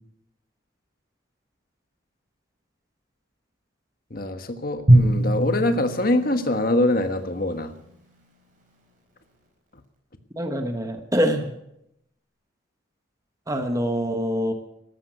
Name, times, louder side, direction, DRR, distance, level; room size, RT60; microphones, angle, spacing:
voice 1, 4.1-7.7, left 1 dB, 45° left, 8 dB, 1.4 m, -24 dB
Drum, 4.9-7.8, right 1 dB, 40° right, 4.5 m, -22 dB
voice 2, 10.4-11.5 13.5-14.5, equal, 15° right, 6 dB, 1.2 m, -24 dB
13.5 x 12.5 x 8.1 m, 0.81 s
head